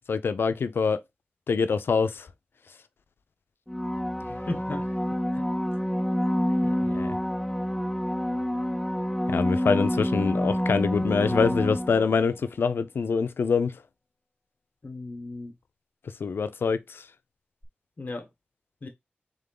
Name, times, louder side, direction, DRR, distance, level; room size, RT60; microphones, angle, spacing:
voice 1, 0.1-1.0 1.5-2.3 6.9-7.2 9.3-13.7 16.2-17.0, left 5 dB, 85° left, 0.4 m, -25 dB
sound 1, 3.7-12.3 17.6-17.7, equal, 5° left, 0.4 m, -28 dB
voice 2, 4.3-4.8 5.4-5.5 14.8-15.5 18.0-18.3 18.8-18.9, left 2 dB, 50° left, 1.1 m, -35 dB
3.7 x 3.5 x 3.8 m
wide cardioid pair, 115°, 4 cm